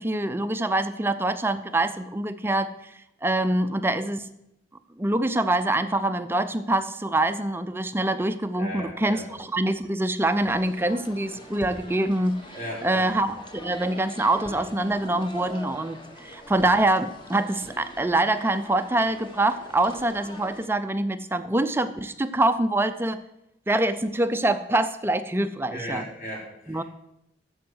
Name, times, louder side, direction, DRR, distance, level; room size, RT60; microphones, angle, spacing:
voice 1, 0.0-2.7 3.2-4.3 5.0-12.4 12.8-23.2 23.7-26.1 26.7-26.8, right 2 dB, 15° right, 10 dB, 0.4 m, -25 dB
voice 2, 8.6-9.2 12.5-13.3 25.7-26.8, equal, 50° left, -3 dB, 4.0 m, -36 dB
sound 1, 10.2-20.7, equal, 30° left, 1.4 m, -44 dB
9.3 x 7.1 x 7.8 m, 0.83 s
head